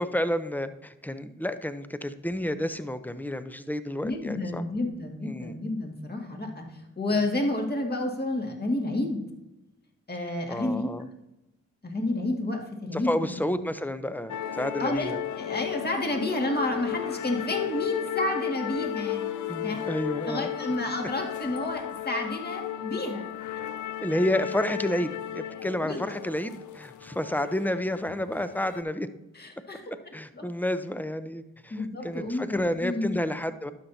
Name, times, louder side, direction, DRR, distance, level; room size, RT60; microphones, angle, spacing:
voice 1, 0.0-4.6 5.2-5.6 10.5-11.0 12.9-15.2 19.5-20.5 24.0-29.1 30.1-33.7, left 1 dB, 5° left, 11 dB, 0.7 m, -30 dB
voice 2, 4.0-9.2 10.1-10.9 11.8-13.3 14.8-15.1 15.4-19.8 20.3-23.3 25.8-26.0 29.3-30.5 31.7-33.2, left 1 dB, 30° left, 1 dB, 2.0 m, -30 dB
sound 1, 14.3-28.8, left 11 dB, 65° left, 0.5 m, -34 dB
12.0 x 5.7 x 2.8 m, 0.96 s
supercardioid pair, 40°, 32 cm